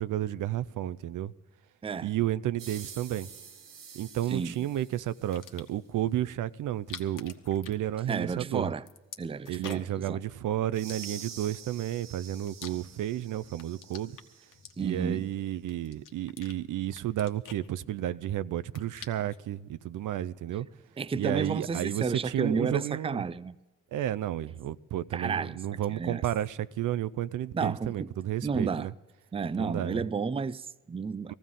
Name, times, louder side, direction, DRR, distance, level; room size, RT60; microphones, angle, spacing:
voice 1, 0.0-1.3 2.0-3.3 3.9-8.7 9.5-14.2 14.8-20.7 21.2-23.2 23.9-28.9 29.6-30.0 31.3-31.4, right 12 dB, 70° right, 0.5 m, -32 dB
sound 1, 2.6-5.6 10.7-14.8, right 7 dB, 85° right, 1.3 m, -47 dB
sound 2, 5.3-5.9 6.7-8.4 8.6-10.0 10.8-11.6 12.1-13.2 13.5-15.2 15.7-16.6 16.9-18.2 18.5-19.4, left 8 dB, 70° left, 1.2 m, -47 dB
voice 2, 8.1-8.8 9.2-10.2 14.8-15.3 21.0-23.6 25.1-25.6 25.9-26.2 27.5-28.1 28.4-28.9 29.3-31.3, right 5 dB, 15° right, 0.4 m, -32 dB
19.5 x 14.5 x 3.7 m
supercardioid pair, 50°, 32 cm